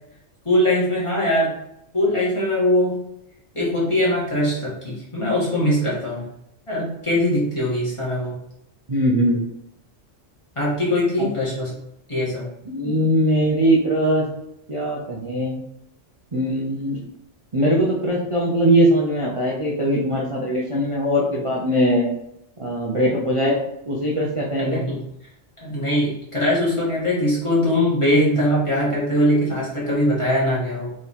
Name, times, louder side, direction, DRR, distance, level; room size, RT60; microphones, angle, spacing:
voice 1, 0.4-1.5 1.9-3.0 3.5-6.2 6.7-8.3 10.5-11.7 12.1-12.5 24.6-25.0 25.6-30.9, left 1 dB, 25° left, -7 dB, 1.5 m, -21 dB
voice 2, 8.9-9.4 11.2-11.3 12.7-14.2 14.7-15.6 16.3-17.0 17.5-22.1 22.6-23.6 23.9-24.8, equal, 35° right, -4 dB, 0.6 m, -21 dB
3.7 x 3.1 x 4.1 m, 0.79 s
omnidirectional pair, 1.3 m